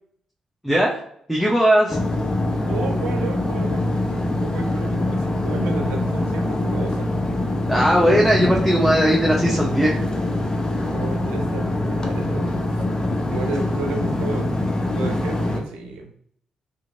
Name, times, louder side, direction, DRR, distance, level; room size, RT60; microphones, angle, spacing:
voice 1, 1.3-2.0 7.7-10.0, equal, ahead, -3 dB, 0.8 m, -18 dB
sound 1, 1.9-15.6, left 1 dB, 35° left, 0.6 m, -24 dB
voice 2, 2.6-7.1 10.9-12.8 13.3-16.1, right 4 dB, 80° right, 3 dB, 0.5 m, -33 dB
2.9 x 2.6 x 2.5 m, 0.65 s
hypercardioid pair, 40°, 2 cm